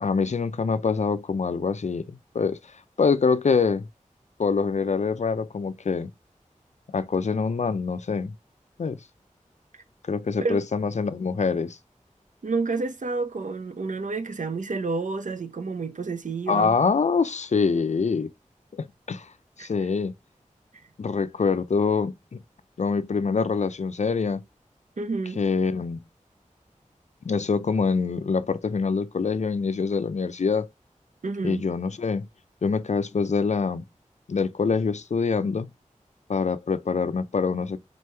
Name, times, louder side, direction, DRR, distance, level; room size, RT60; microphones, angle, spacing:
voice 1, 0.0-2.1 2.3-2.6 3.0-3.8 4.4-6.1 6.9-8.3 8.8-9.0 10.0-11.8 16.5-18.3 18.7-19.3 19.6-20.1 21.0-22.4 22.8-24.4 25.4-26.0 27.3-30.7 31.4-32.3 32.6-33.8 34.3-35.7 36.3-37.8, left 5 dB, 60° left, 0.4 m, -25 dB
voice 2, 12.4-16.8 19.6-19.7 25.0-25.4 31.2-31.6, right 4 dB, 70° right, 0.7 m, -29 dB
4.2 x 3.1 x 3.3 m
cardioid pair, 40°, 13 cm